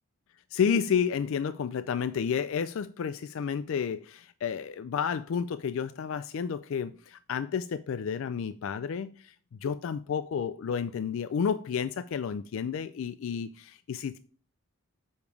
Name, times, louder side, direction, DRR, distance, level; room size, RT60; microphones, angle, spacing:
voice 1, 0.5-9.4 9.6-14.2, left 7 dB, 65° left, 0.3 m, -31 dB
6.9 x 5.3 x 4.6 m
head